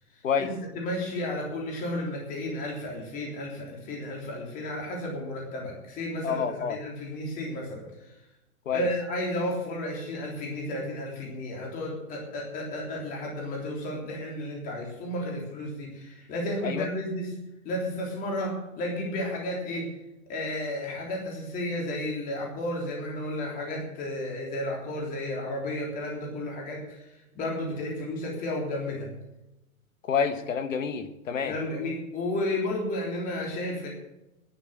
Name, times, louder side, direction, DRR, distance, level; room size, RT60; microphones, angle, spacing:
voice 1, 0.4-7.9 8.7-17.3 17.6-19.9 20.3-27.1 27.3-29.1 31.4-33.9, left 1 dB, 20° left, -1 dB, 3.4 m, -32 dB
voice 2, 6.2-6.8 8.6-8.9 16.6-16.9 30.1-31.5, left 7 dB, 60° left, 10 dB, 1.5 m, -28 dB
11.0 x 9.6 x 8.7 m, 0.92 s
hypercardioid pair, 150°, 43 cm